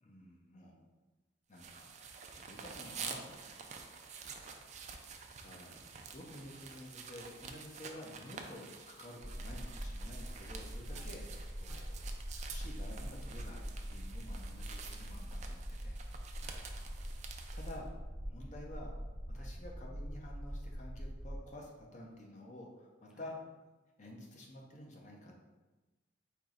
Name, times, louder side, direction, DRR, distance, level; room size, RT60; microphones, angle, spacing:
voice 1, 0.0-0.8 1.5-1.9 2.3-3.7 5.3-11.3 11.6-12.0 12.4-16.0 17.5-17.9 18.2-19.0 19.3-23.3 24.0-25.5, left 1 dB, 45° left, -1 dB, 0.7 m, -51 dB
sound 1, 1.6-17.8, right 5 dB, 40° right, 0.4 m, -49 dB
voice 2, 4.3-4.8 10.9-11.1 11.7-12.0 16.4-17.0 19.3-19.5 23.1-23.3, equal, 5° right, -3 dB, 0.7 m, -61 dB
sound 2, 9.2-21.4, equal, 60° left, 1.4 m, -43 dB
4.5 x 3.0 x 3.8 m, 1.2 s
head